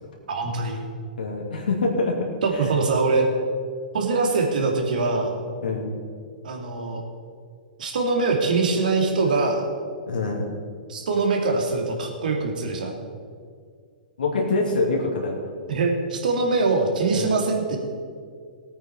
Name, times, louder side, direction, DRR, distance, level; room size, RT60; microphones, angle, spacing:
voice 1, 0.3-0.8 2.4-3.3 3.9-5.3 6.4-7.0 7.8-9.7 10.9-13.0 15.7-17.8, right 3 dB, 65° right, 1 dB, 2.5 m, -23 dB
voice 2, 1.2-2.7 5.6-5.9 10.1-10.4 14.2-15.4 17.1-17.3, left 3 dB, 70° left, -1 dB, 2.6 m, -25 dB
18.5 x 9.0 x 4.5 m, 2.1 s
figure-of-eight pair, 110°, 5 cm